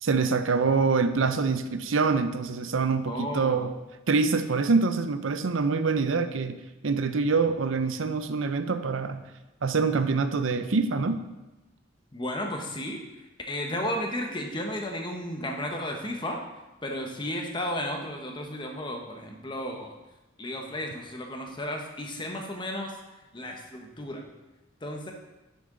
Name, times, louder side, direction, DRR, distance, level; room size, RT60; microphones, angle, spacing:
voice 1, 0.0-3.7 4.1-6.6 6.8-9.2 9.6-11.2, right 4 dB, 80° right, 10 dB, 0.6 m, -25 dB
voice 2, 3.1-3.7 12.1-13.0 13.5-16.4 16.8-20.0 20.4-23.0 23.3-24.2 24.8-25.1, left 1 dB, 25° left, 2 dB, 1.2 m, -33 dB
11.0 x 6.9 x 4.0 m, 1.0 s
head